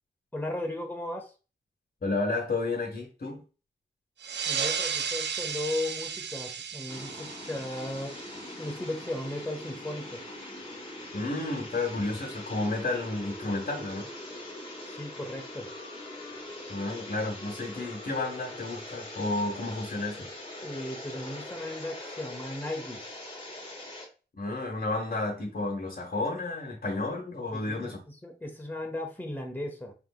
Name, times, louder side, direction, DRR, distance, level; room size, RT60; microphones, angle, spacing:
voice 1, 0.3-1.3 4.5-8.2 8.6-10.2 14.9-15.7 20.6-23.2 27.5-29.9, left 1 dB, 10° left, 1 dB, 1.2 m, -36 dB
voice 2, 2.0-3.4 11.1-14.1 16.7-20.3 24.4-28.0, left 2 dB, 50° left, 0 dB, 1.3 m, -31 dB
sound 1, 4.2-9.3, right 7 dB, 70° right, 0.5 m, -34 dB
sound 2, 6.9-24.1, left 1 dB, 30° left, 1.3 m, -42 dB
4.6 x 3.5 x 2.4 m, 0.34 s
cardioid pair, 65°, 19 cm